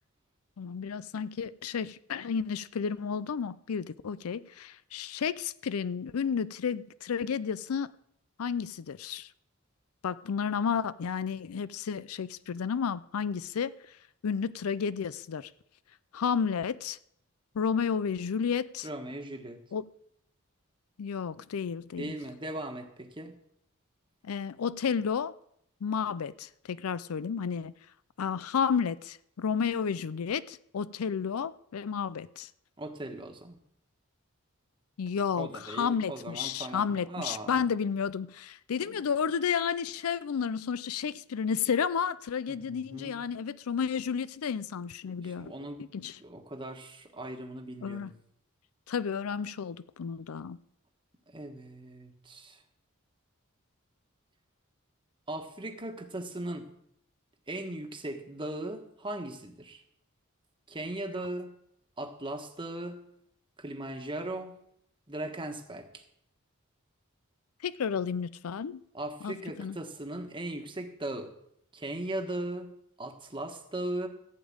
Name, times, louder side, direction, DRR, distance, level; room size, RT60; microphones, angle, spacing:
voice 1, 0.6-7.9 8.4-9.3 10.0-13.7 14.2-15.5 16.1-17.0 17.5-18.9 19.7-19.8 21.0-22.1 24.2-25.3 25.8-27.7 28.2-32.5 35.0-45.5 45.8-46.2 47.8-48.1 48.9-50.6 67.6-68.8 69.2-69.8, left 6 dB, 85° left, 0.5 m, -32 dB
voice 2, 18.8-19.6 22.0-23.4 32.8-33.6 35.4-37.6 42.5-43.1 45.2-45.8 46.2-48.1 51.3-52.6 55.3-56.7 57.5-59.8 60.7-61.6 62.0-63.0 63.6-64.6 65.1-66.0 68.9-71.3 71.7-74.1, right 1 dB, 25° right, 1.4 m, -38 dB
15.0 x 5.2 x 8.8 m
head